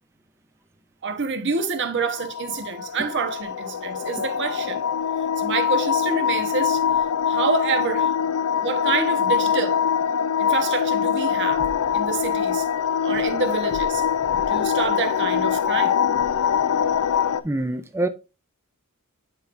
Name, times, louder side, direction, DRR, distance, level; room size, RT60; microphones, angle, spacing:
voice 1, 1.0-4.8 5.4-6.8 7.3-8.1 8.6-9.8 10.4-11.7 11.9-12.6 13.0-14.0 14.5-16.0 16.6-16.8, right 5 dB, 55° right, 1.0 m, -27 dB
sound 1, 2.0-17.4, left 8 dB, 70° left, 0.4 m, -23 dB
voice 2, 17.4-18.1, right 2 dB, 10° right, 0.4 m, -25 dB
8.9 x 4.6 x 2.6 m
head